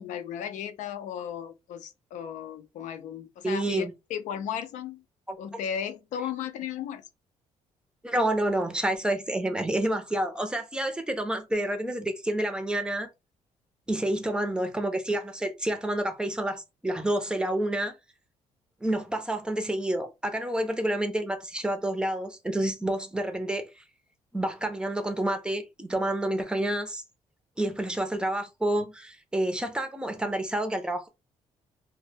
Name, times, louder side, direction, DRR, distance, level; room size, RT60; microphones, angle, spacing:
voice 1, 0.0-5.0 5.4-7.0 28.8-28.9, left 9 dB, 80° left, 0.4 m, -35 dB
voice 2, 3.4-3.9 5.3-5.4 8.0-13.1 13.9-17.9 18.8-23.7 24.3-27.0 27.6-31.1, right 1 dB, 5° right, 0.5 m, -29 dB
2.1 x 2.1 x 3.2 m
cardioid pair, 100°, 12 cm